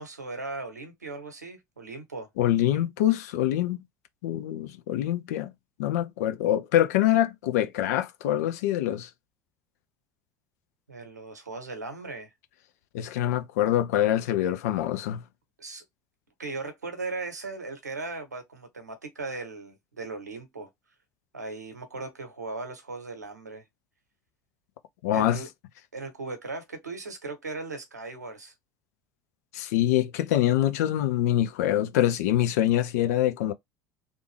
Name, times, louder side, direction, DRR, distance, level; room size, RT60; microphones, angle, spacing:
voice 1, 0.0-2.3 2.7-2.8 10.9-12.3 15.6-15.8 16.4-20.7 21.3-23.6 25.1-25.5 25.9-28.5, right 3 dB, 85° right, 1.0 m, -38 dB
voice 2, 2.4-3.8 4.2-5.5 5.8-9.1 12.9-15.2 25.0-25.4 29.5-33.5, left 12 dB, 70° left, 0.6 m, -25 dB
3.5 x 2.5 x 3.2 m
figure-of-eight pair, 65°, 9 cm